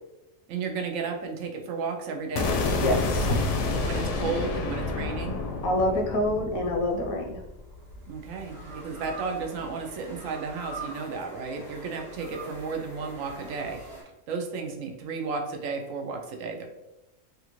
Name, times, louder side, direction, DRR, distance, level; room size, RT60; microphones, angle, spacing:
voice 1, 0.5-2.6 3.9-5.4 8.1-13.8 14.3-16.7, right 5 dB, 75° right, 3 dB, 0.9 m, -33 dB
sound 1, 2.4-8.4, left 3 dB, 70° left, 0.8 m, -29 dB
voice 2, 2.8-3.4 5.6-7.4, left 1 dB, 90° left, 2 dB, 1.1 m, -26 dB
sound 2, 6.5-14.0, right 1 dB, 25° right, 0.9 m, -44 dB
3.4 x 2.5 x 3.0 m, 0.95 s
omnidirectional pair, 1.4 m